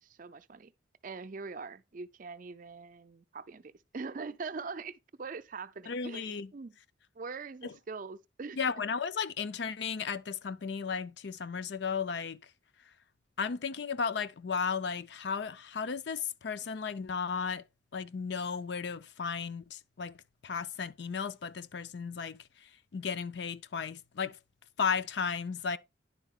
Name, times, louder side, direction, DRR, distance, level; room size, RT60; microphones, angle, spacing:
voice 1, 0.0-0.7 1.0-6.8 7.2-8.6, right 4 dB, 45° right, 0.5 m, -42 dB
voice 2, 5.9-6.5 7.6-7.7 8.6-12.4 13.4-17.6 17.9-20.2 20.4-22.4 22.9-24.4 24.8-25.8, left 6 dB, 60° left, 0.5 m, -34 dB
10.0 x 4.8 x 3.6 m
head